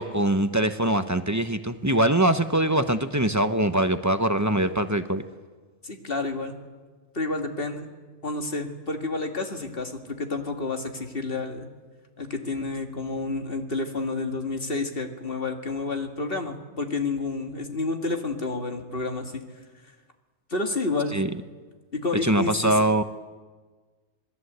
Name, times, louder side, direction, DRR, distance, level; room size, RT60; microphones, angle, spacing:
voice 1, 0.0-5.2 21.1-21.3 22.2-23.0, right 1 dB, 15° right, 9 dB, 0.8 m, -23 dB
voice 2, 5.8-6.5 7.1-7.9 8.2-11.7 12.2-19.4 20.5-21.2 21.9-22.8, left 3 dB, 45° left, 4 dB, 2.2 m, -30 dB
27.5 x 20.0 x 8.2 m, 1.4 s
omnidirectional pair, 1.3 m